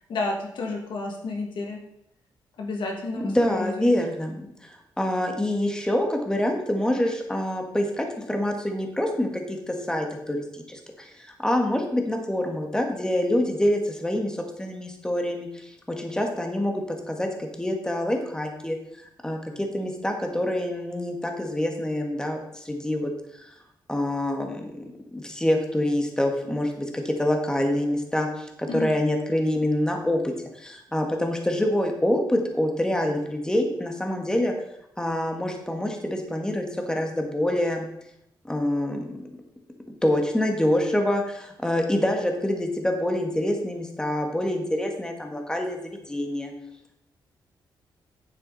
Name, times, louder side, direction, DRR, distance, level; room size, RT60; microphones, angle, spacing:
voice 1, 0.1-1.8 2.6-3.9 28.7-28.9, left 2 dB, 80° left, 1 dB, 2.1 m, -31 dB
voice 2, 3.2-4.4 4.6-18.8 19.2-23.1 23.4-23.5 23.9-34.5 35.0-37.9 38.4-39.3 40.0-46.5, left 1 dB, 10° left, 3 dB, 1.7 m, -26 dB
9.3 x 7.5 x 4.1 m, 0.79 s
cardioid pair, 95°, 8 cm